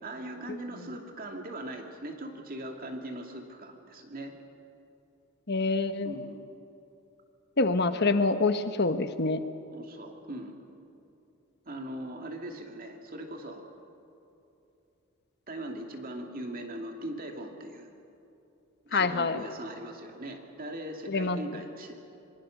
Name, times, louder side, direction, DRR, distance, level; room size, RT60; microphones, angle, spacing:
voice 1, 0.0-4.4 6.0-6.4 9.7-10.5 11.6-13.6 15.5-17.9 18.8-22.0, right 1 dB, 45° right, 3 dB, 2.6 m, -40 dB
voice 2, 5.5-6.1 7.6-9.4 18.9-19.4 21.1-21.4, left 3 dB, 50° left, 9 dB, 1.2 m, -26 dB
26.0 x 23.5 x 6.6 m, 2.8 s
head